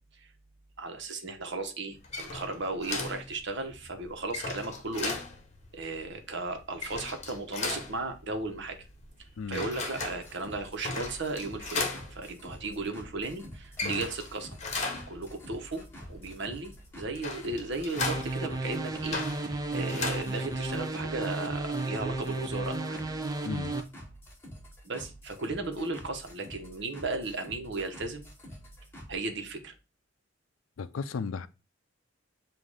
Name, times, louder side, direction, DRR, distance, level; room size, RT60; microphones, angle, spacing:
voice 1, 0.8-5.2 5.7-8.8 9.5-14.6 15.1-15.8 16.1-23.0 24.8-28.2 29.1-29.7, right 3 dB, 60° right, 1.1 m, -35 dB
sound 1, 1.9-20.9, left 3 dB, 35° left, 1.2 m, -38 dB
sound 2, 9.7-29.1, equal, 10° left, 1.5 m, -48 dB
sound 3, 18.0-23.8, right 2 dB, 20° right, 0.6 m, -33 dB
voice 2, 23.4-23.7 30.8-31.5, left 5 dB, 85° left, 0.4 m, -35 dB
7.5 x 2.6 x 4.8 m
head